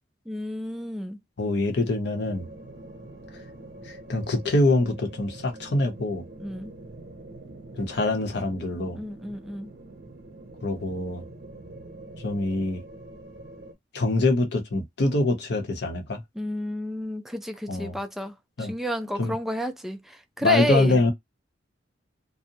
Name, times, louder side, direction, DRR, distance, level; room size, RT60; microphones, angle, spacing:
voice 1, 0.3-1.2 6.4-6.7 8.9-9.7 16.4-21.0, equal, ahead, 0.3 m, -31 dB
voice 2, 1.4-2.5 3.9-6.2 7.8-9.0 10.6-11.2 12.2-12.8 13.9-16.2 17.7-18.0 18.6-18.7 19.2-19.3 20.4-21.1, left 2 dB, 65° left, 0.7 m, -24 dB
sound 1, 2.1-13.7, right 2 dB, 60° right, 0.7 m, -45 dB
2.6 x 2.0 x 2.7 m
head